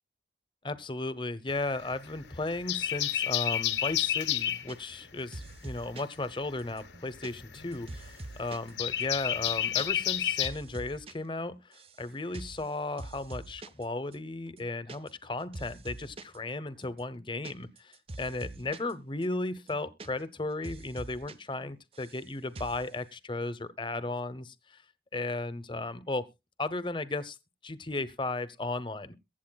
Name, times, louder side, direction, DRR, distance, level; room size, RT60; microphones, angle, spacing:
voice 1, 0.6-24.8 25.1-26.2 26.6-27.4 27.6-29.1, left 2 dB, 25° left, 0.8 m, -35 dB
Carolina Wren, 1.5-2.2 2.5-4.7 6.3-10.5, left 11 dB, 80° left, 1.1 m, -30 dB
sound 1, 4.7-5.1 5.3-6.2 6.6-8.7 9.0-9.1 9.4-9.9 10.1-11.1 11.4-12.0 12.3-12.7 13.0-13.8 14.1-14.2 14.5-15.3 15.5-16.4 16.8-18.9 19.2-19.3 19.6-20.4 20.6-21.3 21.6-22.2 22.5-22.9, right 2 dB, 30° right, 0.6 m, -44 dB
22.5 x 8.0 x 2.3 m
head